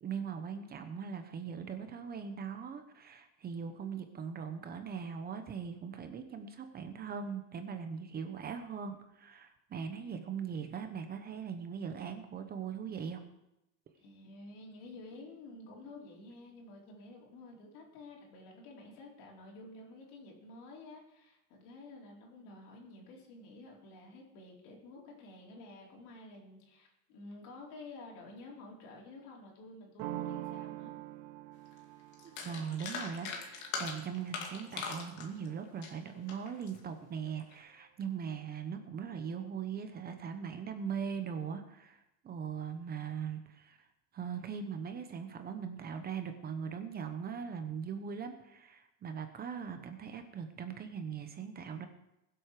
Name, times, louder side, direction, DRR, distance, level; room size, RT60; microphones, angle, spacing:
voice 1, 0.0-13.2 32.2-43.9 44.1-51.9, right 7 dB, 25° right, 7 dB, 0.8 m, -40 dB
voice 2, 14.0-30.9, left 2 dB, 75° left, -2 dB, 4.5 m, -51 dB
sound 1, 30.0-35.5, right 14 dB, 80° right, 1.0 m, -45 dB
sound 2, 31.7-31.8 32.1-36.8 37.3-37.5, left 5 dB, 50° left, 2.4 m, -40 dB
21.5 x 7.9 x 4.9 m, 0.89 s
cardioid pair, 180°, 38 cm